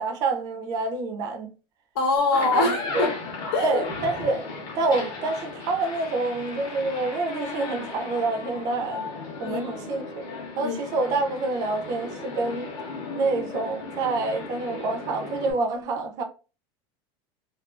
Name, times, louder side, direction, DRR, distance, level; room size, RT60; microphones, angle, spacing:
voice 1, 0.0-1.5 2.6-3.1 3.6-4.5 4.7-9.1 9.4-10.2 10.6-12.7 13.2-16.2, right 3 dB, 30° right, 0.4 m, -27 dB
voice 2, 1.9-3.1 3.5-3.8 9.4-9.6 10.6-10.7, left 3 dB, 75° left, 0.8 m, -23 dB
sound 1, 2.2-15.5, left 3 dB, 30° left, 0.6 m, -35 dB
2.4 x 2.3 x 2.3 m
supercardioid pair, 170°, 13 cm